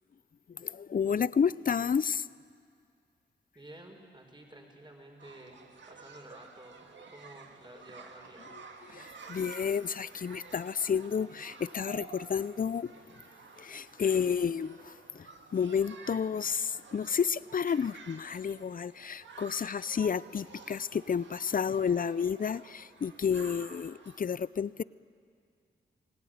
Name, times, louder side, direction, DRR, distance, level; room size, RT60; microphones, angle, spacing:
voice 1, 0.5-2.3 8.9-12.9 13.6-15.3 15.5-24.8, left 7 dB, 45° left, 20 dB, 0.6 m, -31 dB
voice 2, 3.5-5.6 5.9-6.8 7.1-8.5, right 1 dB, 25° right, 2 dB, 5.7 m, -51 dB
sound 1, 5.2-24.2, right 5 dB, 75° right, 1.9 m, -51 dB
28.5 x 18.5 x 9.5 m, 2.2 s
cardioid pair, 45°, 19 cm